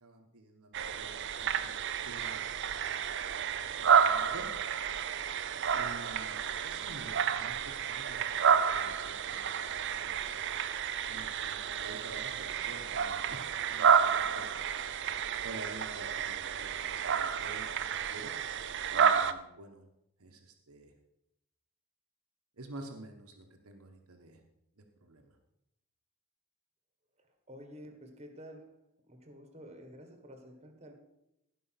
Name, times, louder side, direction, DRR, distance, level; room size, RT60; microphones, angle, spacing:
voice 1, 0.0-1.7 2.0-2.9 3.6-4.5 5.7-9.5 9.9-10.3 11.1-13.4 13.7-14.5 15.4-18.3 18.9-19.8 20.2-20.9 22.6-24.4 24.8-25.4, right 2 dB, 90° right, 4 dB, 1.4 m, -49 dB
sound 1, 0.7-19.3, right 7 dB, 55° right, 0.6 m, -30 dB
voice 2, 27.5-28.8 29.1-30.9, equal, 30° right, 6 dB, 1.6 m, -50 dB
16.0 x 5.6 x 5.9 m, 0.84 s
head